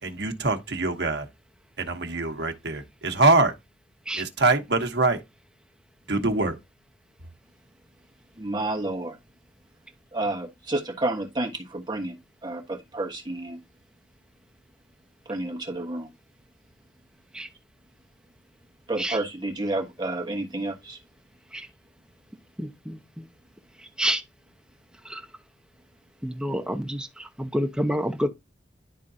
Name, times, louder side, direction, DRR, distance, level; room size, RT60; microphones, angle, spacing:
voice 1, 0.0-1.3 1.8-3.5 4.2-5.2 6.1-6.5, right 3 dB, 65° right, 1.1 m, -23 dB
voice 2, 8.4-9.2 10.1-12.2 12.4-13.6 15.3-16.1 18.9-21.0, right 2 dB, 25° right, 1.2 m, -30 dB
voice 3, 22.6-23.3 24.0-24.2 25.0-25.2 26.2-28.3, equal, 5° right, 0.7 m, -28 dB
11.0 x 3.7 x 2.7 m
head